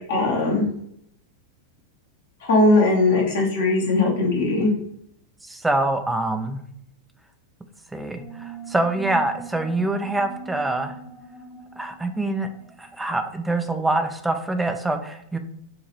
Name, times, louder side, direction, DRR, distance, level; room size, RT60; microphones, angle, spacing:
voice 1, 0.1-0.7 2.4-4.7, left 2 dB, 60° left, -1 dB, 1.3 m, -19 dB
voice 2, 5.4-6.6 7.9-10.9 11.8-12.5 12.8-15.4, right 2 dB, 5° right, 7 dB, 0.5 m, -25 dB
sound 1, 8.1-13.4, right 2 dB, 10° left, 0.9 m, -41 dB
5.3 x 2.8 x 3.1 m, 0.71 s
figure-of-eight pair, 90°, 0 cm